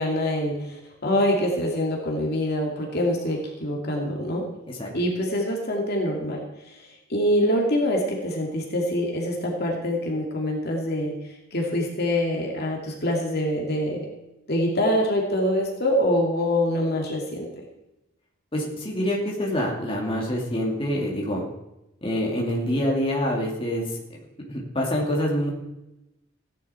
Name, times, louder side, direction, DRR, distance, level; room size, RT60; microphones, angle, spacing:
voice 1, 0.0-4.5 4.9-11.1 11.5-14.1 14.5-17.6, left 1 dB, 50° left, 0 dB, 2.4 m, -25 dB
voice 2, 18.5-21.4 22.0-24.0 24.5-25.5, equal, 25° left, -2 dB, 2.5 m, -26 dB
16.5 x 10.5 x 4.4 m, 0.93 s
head